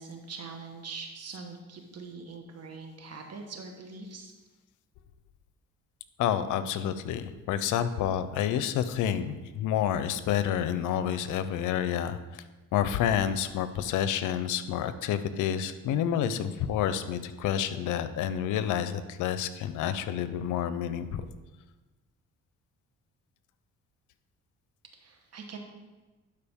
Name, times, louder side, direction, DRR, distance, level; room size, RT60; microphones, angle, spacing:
voice 1, 0.0-4.3 24.9-25.6, right 4 dB, 55° right, 4 dB, 1.3 m, -43 dB
voice 2, 6.2-12.4 12.7-21.3, left 9 dB, 85° left, 12 dB, 0.6 m, -29 dB
11.5 x 4.6 x 3.6 m, 1.2 s
cardioid pair, 90°, 30 cm